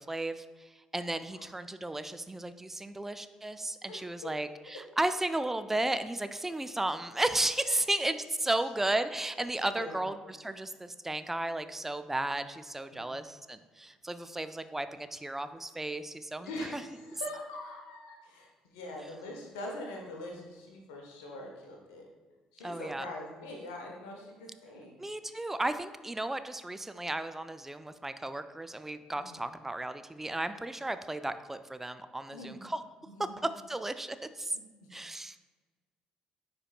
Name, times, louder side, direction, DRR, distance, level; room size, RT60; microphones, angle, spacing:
voice 1, 0.0-16.8 22.6-23.1 25.0-32.8 33.2-34.6 34.9-35.4, right 1 dB, 10° right, 11 dB, 0.4 m, -34 dB
voice 2, 9.6-10.0 10.5-10.6 12.9-13.2 16.4-22.0 22.5-25.0 29.2-29.4 32.3-32.6 33.1-33.4 34.5-34.6, left 1 dB, 70° left, 1 dB, 0.9 m, -43 dB
9.9 x 4.3 x 2.3 m, 1.3 s
figure-of-eight pair, 50°, 3 cm